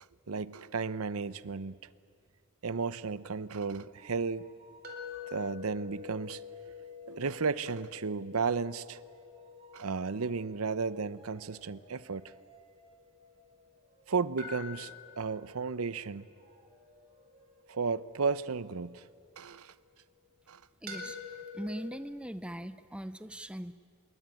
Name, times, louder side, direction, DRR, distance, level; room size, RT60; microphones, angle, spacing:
voice 1, 0.3-1.7 2.6-4.5 5.3-6.4 7.1-9.0 9.7-12.2 14.1-16.3 17.7-19.0 19.4-19.7 20.5-20.6, right 4 dB, 90° right, 16 dB, 0.8 m, -33 dB
sound 1, 3.6-8.0 8.5-19.9, right 3 dB, 30° right, 4.7 m, -63 dB
sound 2, 4.8-13.8 14.4-19.5 20.9-22.0, left 5 dB, 45° right, 4.1 m, -48 dB
voice 2, 20.8-21.2 21.5-23.7, equal, 5° right, 12 dB, 0.6 m, -40 dB
26.0 x 22.0 x 9.2 m, 2.2 s
head